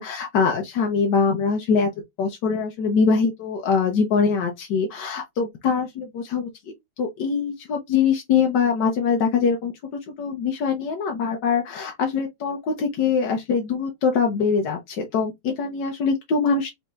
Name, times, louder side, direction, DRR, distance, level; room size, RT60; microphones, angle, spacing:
voice 1, 0.0-1.9 2.2-9.7 10.2-16.7, left 5 dB, 85° left, 1.5 m, -23 dB
4.3 x 3.1 x 3.4 m
omnidirectional pair, 1.8 m